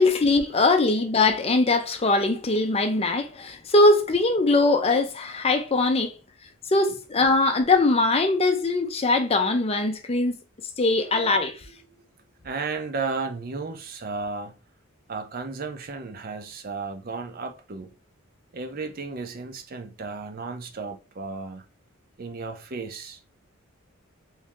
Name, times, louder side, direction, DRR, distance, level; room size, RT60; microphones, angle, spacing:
voice 1, 0.0-6.1 6.7-10.4 10.8-11.6, left 2 dB, 25° left, 0.5 m, -21 dB
voice 2, 11.0-11.3 12.4-14.5 15.1-17.9 18.5-21.6 22.2-23.2, right 4 dB, 40° right, 0.6 m, -34 dB
3.0 x 2.7 x 3.5 m
head